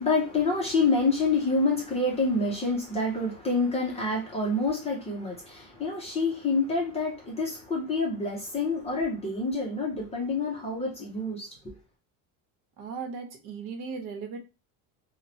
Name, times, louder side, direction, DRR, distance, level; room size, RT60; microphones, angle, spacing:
voice 1, 0.0-11.7, left 3 dB, 15° left, 0.5 m, -27 dB
voice 2, 12.8-14.4, right 5 dB, 65° right, 0.9 m, -37 dB
2.9 x 2.1 x 2.6 m
cardioid pair, 180°, 39 cm